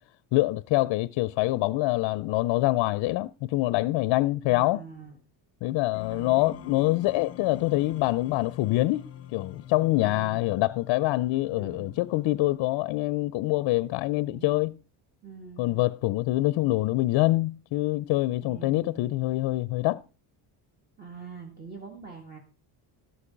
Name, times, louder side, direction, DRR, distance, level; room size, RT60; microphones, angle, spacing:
voice 1, 0.3-4.8 5.6-14.8 15.6-20.0, left 18 dB, 65° left, 0.5 m, -25 dB
voice 2, 4.5-5.2 6.1-6.8 10.0-10.5 11.5-12.0 14.3-14.7 15.2-15.8 18.4-19.3 21.0-22.4, right 5 dB, 20° right, 1.6 m, -45 dB
sound 1, 5.9-13.0, left 11 dB, 30° left, 1.1 m, -46 dB
13.0 x 8.5 x 5.0 m
cardioid pair, 170°, 46 cm